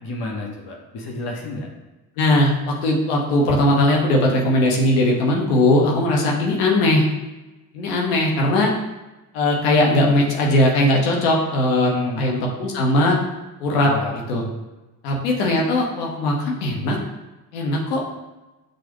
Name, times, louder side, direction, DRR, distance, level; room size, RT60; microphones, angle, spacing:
voice 1, 0.0-1.7 11.8-12.2 13.8-14.2, left 2 dB, 55° left, 0 dB, 1.0 m, -30 dB
voice 2, 2.2-7.1 7.7-8.7 9.3-11.9 12.2-13.2 13.6-13.9 14.3-14.4 15.0-17.0 17.5-18.1, left 1 dB, 85° left, -1 dB, 0.9 m, -19 dB
6.3 x 2.4 x 3.0 m, 1.1 s
hypercardioid pair, 60°, 45 cm